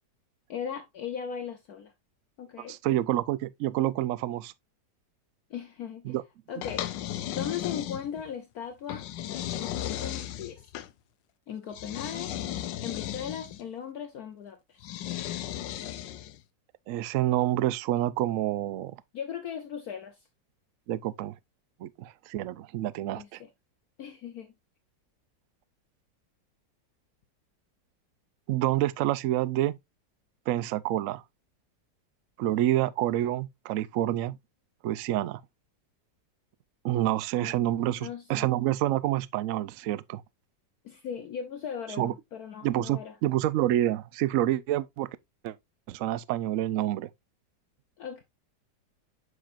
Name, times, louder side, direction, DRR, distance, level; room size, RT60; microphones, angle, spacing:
voice 1, 0.5-1.9 2.4-2.8 5.5-6.1 6.5-6.9 7.3-9.0 9.6-10.6 11.5-12.3 12.8-14.8 19.1-20.2 23.2-23.5 24.0-24.5 37.3-38.5 40.8-43.1 48.0-48.2, left 8 dB, 60° left, 1.2 m, -38 dB
voice 2, 2.7-4.5 6.1-6.2 16.9-19.0 20.9-21.4 21.8-23.4 28.5-29.8 30.5-31.2 32.4-34.4 34.8-35.4 36.8-40.2 42.0-42.1 42.6-45.1 45.4-45.6 45.9-47.1, right 14 dB, 90° right, 0.7 m, -28 dB
sound 1, 6.6-8.3 8.9-10.9 11.7-13.6 14.8-16.4, left 12 dB, 80° left, 1.4 m, -35 dB
8.2 x 5.8 x 2.5 m
omnidirectional pair, 2.0 m